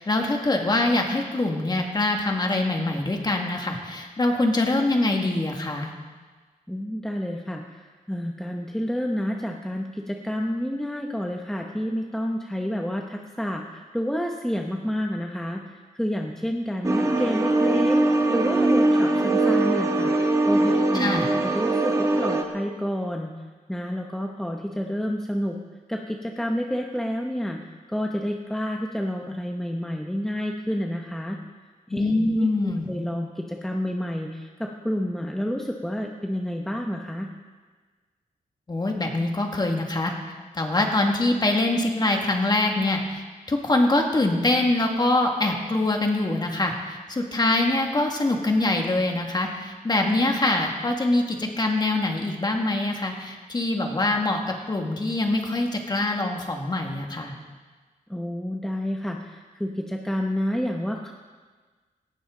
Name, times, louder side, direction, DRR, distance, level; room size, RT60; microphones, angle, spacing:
voice 1, 0.0-5.9 20.9-21.3 31.9-32.9 38.7-40.1 40.5-43.2 43.5-57.3, left 2 dB, 30° left, 2 dB, 2.0 m, -24 dB
voice 2, 6.7-20.1 20.4-23.3 23.7-25.6 25.9-27.6 27.9-31.4 31.9-37.3 58.1-61.1, equal, 5° left, 1 dB, 0.9 m, -29 dB
sound 1, 16.8-22.4, right 2 dB, 20° right, 1.4 m, -21 dB
18.0 x 16.0 x 3.9 m, 1.4 s
wide cardioid pair, 120°, 15 cm